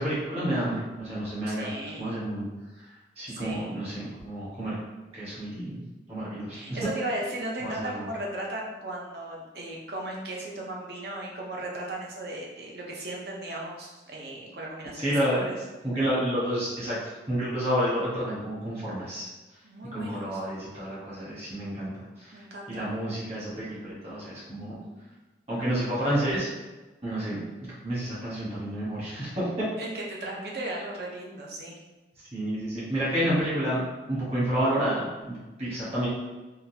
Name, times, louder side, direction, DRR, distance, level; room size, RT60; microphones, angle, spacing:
voice 1, 0.0-1.7 2.0-2.5 3.2-4.8 5.1-5.8 6.1-6.6 7.6-8.1 14.9-15.5 15.8-17.0 17.3-19.3 19.9-21.9 22.2-22.4 22.7-24.8 25.5-26.5 27.0-27.4 27.8-29.7 32.3-33.8 34.1-36.1, equal, 35° right, -9 dB, 1.3 m, -29 dB
voice 2, 1.5-2.1 3.3-3.7 6.5-15.5 19.6-20.6 22.3-22.8 24.6-25.0 29.8-31.8, right 1 dB, 60° right, -2 dB, 0.7 m, -36 dB
3.7 x 2.3 x 2.8 m, 1.2 s
head